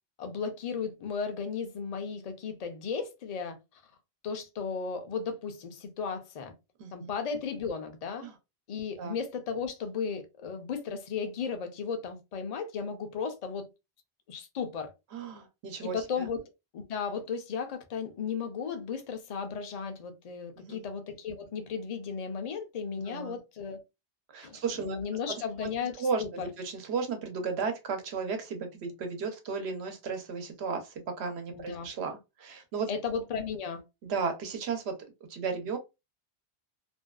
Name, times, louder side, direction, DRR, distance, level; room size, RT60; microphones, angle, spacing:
voice 1, 0.2-3.6 4.2-6.5 6.9-8.3 8.7-13.7 14.3-14.9 15.8-23.8 24.4-26.5 31.5-31.9 32.9-33.8, left 6 dB, 50° left, 0.5 m, -35 dB
voice 2, 6.8-7.1 8.2-8.3 9.0-9.2 15.1-16.3 20.6-20.9 23.1-23.4 24.3-25.0 25.3-25.4 26.0-32.9 34.0-35.0 35.3-35.8, right 5 dB, 80° right, 0.9 m, -34 dB
2.6 x 2.2 x 2.3 m
omnidirectional pair, 1.1 m